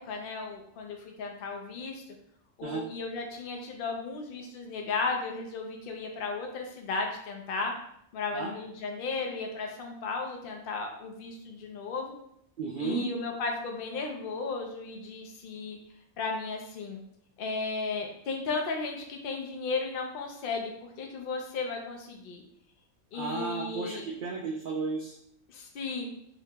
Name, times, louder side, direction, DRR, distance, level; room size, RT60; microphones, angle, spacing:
voice 1, 0.1-2.0 2.6-7.7 8.1-12.1 12.8-15.8 16.2-17.0 17.4-22.4 23.1-24.0 25.5-26.1, left 4 dB, 80° left, 2 dB, 0.5 m, -35 dB
voice 2, 12.6-13.0 23.1-25.2, right 4 dB, 90° right, -2 dB, 0.4 m, -33 dB
2.8 x 2.8 x 3.3 m, 0.72 s
omnidirectional pair, 1.5 m